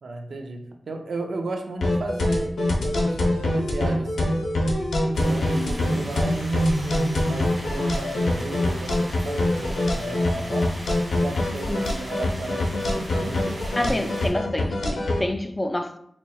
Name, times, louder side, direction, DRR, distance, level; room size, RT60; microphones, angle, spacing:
voice 1, 0.0-2.5 2.8-4.3 5.2-10.7 11.2-14.3, right 2 dB, 75° right, 0.5 m, -35 dB
sound 1, 1.8-15.2, left 1 dB, 90° left, 0.6 m, -24 dB
sound 2, 5.1-14.3, right 1 dB, 35° right, 1.4 m, -39 dB
voice 2, 13.8-16.0, left 1 dB, 25° left, 0.3 m, -27 dB
4.2 x 2.9 x 2.3 m
cardioid pair, 60°, 0 cm